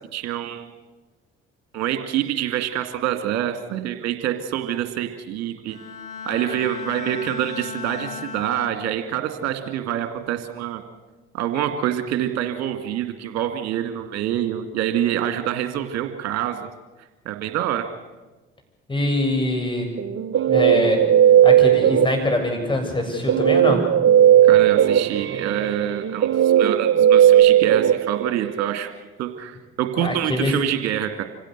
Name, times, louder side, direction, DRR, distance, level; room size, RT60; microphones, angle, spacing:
voice 1, 0.1-0.7 1.7-5.8 6.3-10.8 11.3-16.7 17.3-17.9 24.4-28.9 29.2-31.2, right 11 dB, 60° right, 7 dB, 2.2 m, -26 dB
Bowed string instrument, 5.7-9.3 9.7-10.1, left 5 dB, 75° left, 3.0 m, -36 dB
voice 2, 18.9-19.9 20.5-21.0 21.4-23.8 30.0-30.5, left 1 dB, 15° left, 2 dB, 7.5 m, -23 dB
Guitar, 20.0-22.5 23.3-28.7, right 10 dB, 40° right, 0.7 m, -16 dB
26.0 x 16.5 x 8.1 m, 1.2 s
figure-of-eight pair, 50°, 30 cm